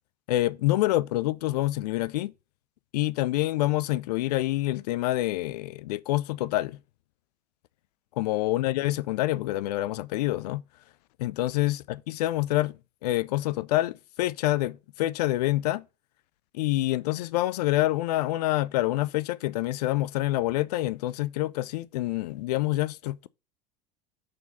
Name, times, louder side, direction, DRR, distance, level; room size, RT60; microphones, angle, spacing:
voice 1, 0.3-2.3 2.9-6.8 8.2-10.6 11.2-15.8 16.5-23.3, left 16 dB, 70° left, 0.5 m, -27 dB
6.2 x 4.5 x 5.7 m
hypercardioid pair, 70°, 21 cm